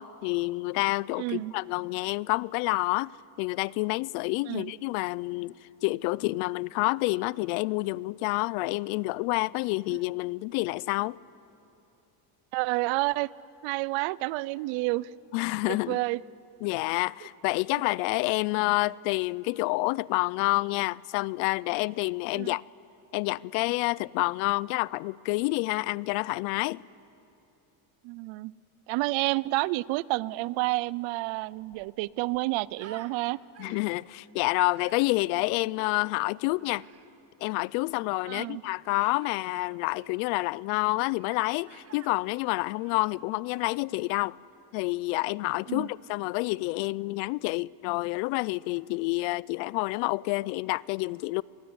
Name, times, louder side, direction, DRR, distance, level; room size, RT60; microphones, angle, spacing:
voice 1, 0.0-5.6 5.8-11.2 15.3-16.0 16.6-22.6 23.1-26.9 33.6-36.9 37.4-44.4 44.7-51.4, left 23 dB, 85° left, 0.6 m, -28 dB
voice 2, 1.2-1.5 4.5-4.7 9.9-10.0 12.5-13.3 13.6-15.1 15.7-16.2 22.3-22.6 28.0-28.5 28.9-33.4 38.3-38.6 45.7-45.9, right 21 dB, 75° right, 0.7 m, -29 dB
Human voice, 31.5-33.1 33.5-34.0 34.6-35.1 36.6-37.1 39.0-39.3 39.9-40.2 41.2-41.4 41.7-42.1 42.7-43.8, right 7 dB, 30° right, 1.7 m, -52 dB
27.0 x 21.0 x 9.6 m
cardioid pair, 125°, 47 cm